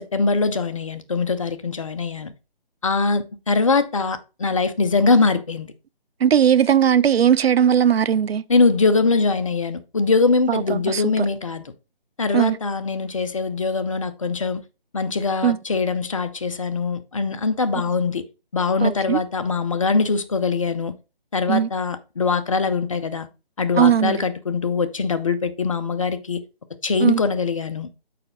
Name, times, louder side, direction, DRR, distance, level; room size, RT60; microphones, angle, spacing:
voice 1, 0.0-2.3 2.8-5.7 8.5-11.7 12.2-14.6 14.9-18.2 18.5-20.9 21.3-23.3 23.6-26.4 26.8-27.9, left 4 dB, 35° left, 0.5 m, -22 dB
voice 2, 6.2-8.4 10.5-11.1 12.3-12.6 15.4-15.6 18.8-19.2 21.5-21.7 23.8-24.2 27.0-27.2, right 8 dB, 80° right, 0.5 m, -18 dB
6.6 x 5.0 x 3.8 m
figure-of-eight pair, 155°, 30 cm